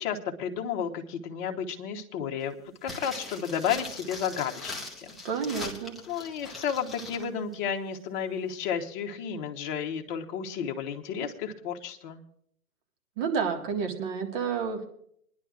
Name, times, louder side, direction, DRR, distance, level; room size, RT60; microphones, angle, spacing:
voice 1, 0.0-2.5 2.8-5.2 6.1-12.2, left 7 dB, 35° left, 3 dB, 1.2 m, -32 dB
sound 1, 2.8-7.3 7.5-7.6, left 2 dB, ahead, 0.8 m, -41 dB
voice 2, 5.2-6.0 13.2-14.9, right 6 dB, 35° right, 3 dB, 1.8 m, -30 dB
27.0 x 10.5 x 2.5 m, 0.68 s
hypercardioid pair, 125°, 45 cm